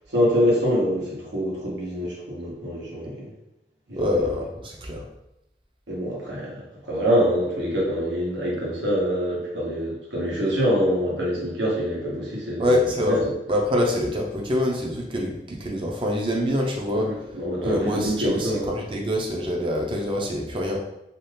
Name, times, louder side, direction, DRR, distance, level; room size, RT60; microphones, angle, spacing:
voice 1, 0.1-3.3 3.9-4.3 5.9-12.8 13.1-13.2 17.0-18.6, equal, 90° right, -4 dB, 1.1 m, -25 dB
voice 2, 4.0-5.0 12.6-17.1 17.6-20.8, left 1 dB, 30° right, 0 dB, 0.5 m, -25 dB
2.8 x 2.3 x 3.2 m, 0.87 s
head